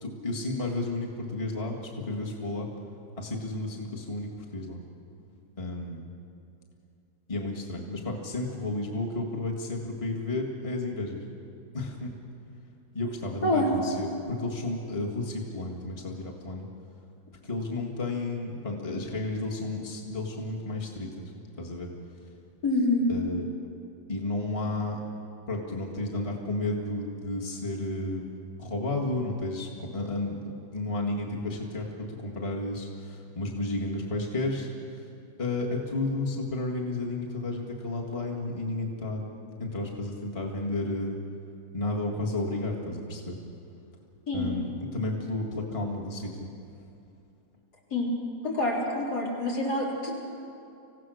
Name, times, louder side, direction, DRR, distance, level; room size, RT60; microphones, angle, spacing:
voice 1, 0.0-2.7 3.2-4.8 5.6-6.1 7.3-11.2 11.7-12.1 12.9-16.7 17.4-21.3 21.6-21.9 23.1-23.4 24.1-25.0 25.5-28.3 28.6-30.4 30.7-34.7 35.4-39.2 39.6-41.2 41.7-43.3 44.3-46.3, left 2 dB, 20° left, -2 dB, 1.8 m, -32 dB
voice 2, 22.6-23.1 44.3-44.5 47.9-48.1 48.4-50.1, left 2 dB, 75° left, -4 dB, 4.3 m, -26 dB
26.5 x 16.0 x 6.4 m, 2.6 s
omnidirectional pair, 1.7 m